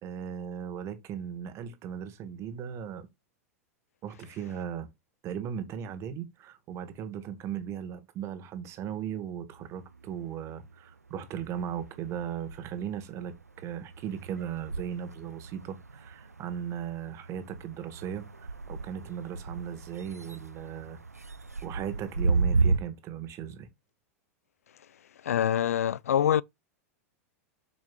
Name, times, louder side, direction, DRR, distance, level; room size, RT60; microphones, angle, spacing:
voice 1, 0.0-3.1 4.0-4.9 5.2-21.0 21.6-23.7, right 8 dB, 35° right, 1.7 m, -37 dB
sound 1, 9.5-10.7 11.1-22.8, right 4 dB, 90° right, 0.6 m, -34 dB
voice 2, 25.2-26.4, left 10 dB, 70° left, 0.4 m, -25 dB
7.8 x 6.2 x 2.5 m
figure-of-eight pair, 95°, 8 cm